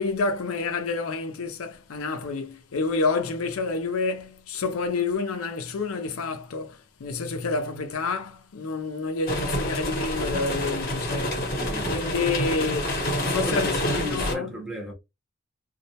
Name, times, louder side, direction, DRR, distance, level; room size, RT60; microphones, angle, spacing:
voice 1, 0.0-11.6 11.9-13.0 13.3-14.5, left 4 dB, 85° left, 0.5 m, -29 dB
sound 1, 9.3-14.4, left 1 dB, 45° left, 0.8 m, -28 dB
voice 2, 11.5-12.0 13.4-14.9, left 1 dB, ahead, 0.7 m, -33 dB
2.3 x 2.0 x 2.7 m
head